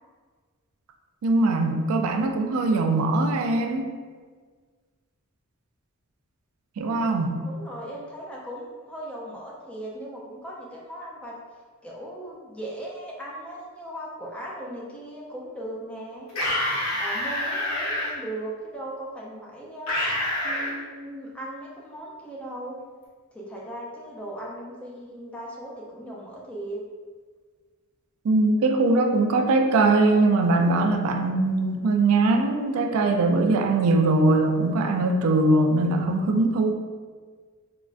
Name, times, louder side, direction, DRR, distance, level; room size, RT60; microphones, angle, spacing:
voice 1, 1.2-3.9 6.8-7.4 28.2-36.7, right 2 dB, 75° right, 4 dB, 0.3 m, -21 dB
voice 2, 7.4-11.3 11.8-16.3 16.9-20.0 20.4-22.8 23.3-26.8, right 1 dB, 5° left, -4 dB, 0.4 m, -38 dB
sound 1, 16.3-18.1 19.9-20.7, left 1 dB, 90° left, 0.8 m, -27 dB
3.4 x 2.1 x 2.4 m, 1.5 s
head